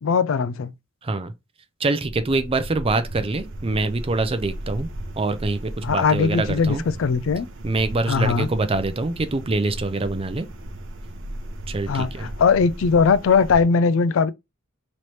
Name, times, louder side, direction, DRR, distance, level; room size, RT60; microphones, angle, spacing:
voice 1, 0.0-0.7 5.8-7.5 8.1-8.5 11.9-14.3, left 5 dB, 70° left, 0.4 m, -20 dB
voice 2, 1.0-1.3 1.8-4.9 5.2-6.8 7.6-10.5 11.7-12.3, right 3 dB, 30° right, 0.5 m, -24 dB
sound 1, 2.0-13.6, right 1 dB, 65° right, 0.8 m, -36 dB
3.2 x 3.1 x 4.0 m
head